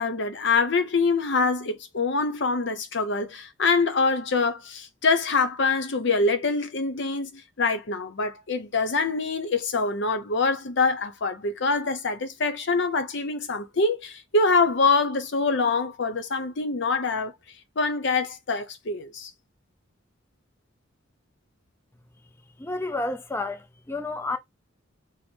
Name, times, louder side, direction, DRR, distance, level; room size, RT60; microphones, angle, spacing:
voice 1, 0.0-17.3 17.8-19.3, left 4 dB, 65° left, 0.8 m, -25 dB
voice 2, 22.6-24.4, left 2 dB, 10° left, 0.4 m, -30 dB
4.8 x 2.1 x 4.4 m
head